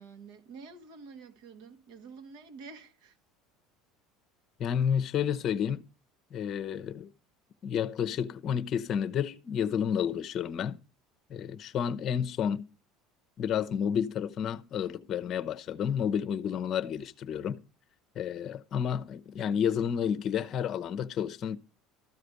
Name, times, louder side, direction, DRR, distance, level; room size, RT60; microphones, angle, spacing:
voice 1, 0.0-3.2, right 4 dB, 70° right, 1.7 m, -48 dB
voice 2, 4.6-5.9 6.3-7.1 7.6-10.8 11.3-12.6 13.4-17.6 18.2-21.6, left 8 dB, 40° left, 0.8 m, -30 dB
13.5 x 5.0 x 8.1 m
cardioid pair, 140°, 0 cm